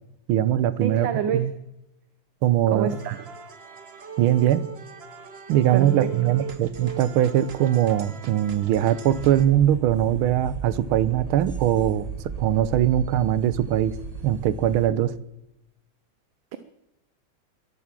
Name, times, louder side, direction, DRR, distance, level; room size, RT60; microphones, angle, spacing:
voice 1, 0.3-1.1 1.3-1.5 2.4-2.9 4.2-4.6 5.5-12.1 12.4-14.0 14.2-15.2, right 11 dB, 85° right, 16 dB, 1.6 m, -21 dB
voice 2, 0.8-1.5 2.7-3.2 5.7-5.9 6.5-6.6, right 8 dB, 70° right, 11 dB, 1.6 m, -27 dB
sound 1, 2.9-9.5, right 6 dB, 40° right, 1.1 m, -39 dB
sound 2, 9.1-14.9, right 5 dB, 20° right, 1.4 m, -36 dB
22.5 x 8.5 x 7.5 m, 0.89 s
omnidirectional pair, 2.3 m